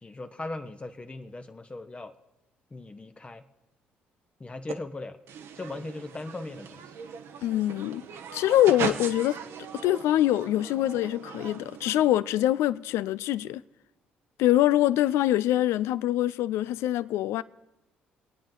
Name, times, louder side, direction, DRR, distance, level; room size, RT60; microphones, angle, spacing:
voice 1, 0.0-2.1 2.7-3.4 4.4-5.2 5.6-6.8, left 2 dB, 25° left, 0.9 m, -38 dB
sound 1, 4.7-4.8 5.3-12.1, right 7 dB, 65° right, 0.9 m, -39 dB
voice 2, 7.4-8.0 8.3-9.4 9.8-13.6 14.4-17.4, left 13 dB, 75° left, 0.4 m, -24 dB
26.0 x 8.9 x 3.8 m
hypercardioid pair, 55°, 5 cm